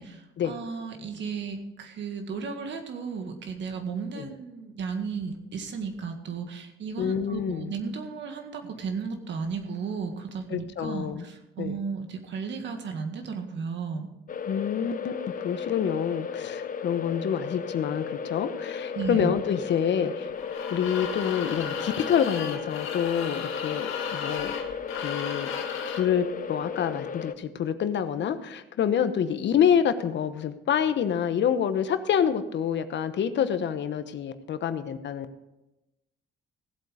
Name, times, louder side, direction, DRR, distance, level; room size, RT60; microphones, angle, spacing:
voice 1, 0.0-14.1 18.9-19.3, right 5 dB, 65° right, 5 dB, 2.0 m, -34 dB
voice 2, 7.0-7.7 10.5-11.2 11.6-11.8 14.4-20.3 20.7-24.6 24.9-25.5 25.9-35.3, left 8 dB, 65° left, 11 dB, 1.0 m, -27 dB
sound 1, 14.3-27.3, left 6 dB, 45° left, 0.7 m, -35 dB
sound 2, 20.4-26.1, left 6 dB, 85° left, 1.8 m, -35 dB
16.5 x 8.0 x 5.0 m, 0.96 s
cardioid pair, 90°, 20 cm